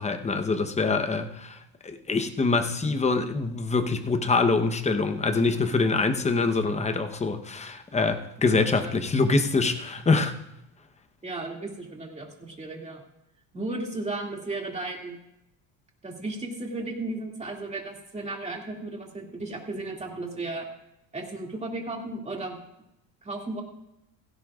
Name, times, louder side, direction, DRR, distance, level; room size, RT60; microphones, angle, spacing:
voice 1, 0.0-1.6 1.8-10.3, left 3 dB, 15° left, 7 dB, 1.0 m, -25 dB
voice 2, 8.4-9.0 11.2-13.0 13.5-15.2 16.0-20.7 21.1-22.6 23.2-23.6, right 2 dB, 15° right, 0 dB, 2.4 m, -35 dB
16.5 x 16.0 x 2.5 m, 0.85 s
cardioid pair, 125°, 45 cm